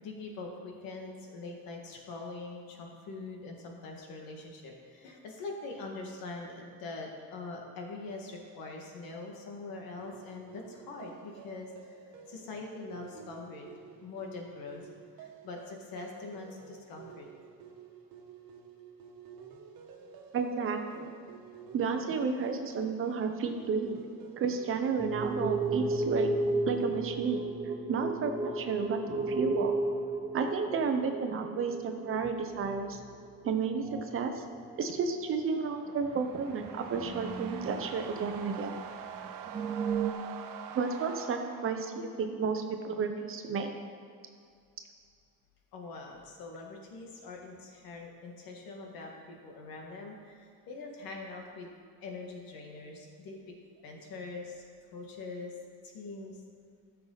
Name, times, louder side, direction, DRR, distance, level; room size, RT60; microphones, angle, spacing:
voice 1, 0.0-13.7 13.9-14.8 15.2-17.3 45.7-51.7 52.0-53.4 53.8-54.6 54.9-55.5 55.8-56.4, left 3 dB, 90° left, 1 dB, 1.9 m, -43 dB
sound 1, 10.0-27.6, right 6 dB, 90° right, 1.3 m, -51 dB
voice 2, 20.3-21.1 21.7-24.0 24.4-26.3 26.7-27.4 27.9-29.7 30.3-33.0 33.4-33.9 34.1-34.4 34.8-38.7 40.7-43.7, right 5 dB, 40° right, 6 dB, 0.9 m, -32 dB
sound 2, 25.0-33.5 33.8-34.4 34.7-34.8 35.3-35.4 36.4-38.5 38.9-39.0 39.2-40.1, right 3 dB, 15° right, 0.4 m, -34 dB
sound 3, 35.3-42.4, right 8 dB, 70° right, 0.8 m, -45 dB
14.5 x 6.8 x 4.0 m, 2.3 s
cardioid pair, 175°, 34 cm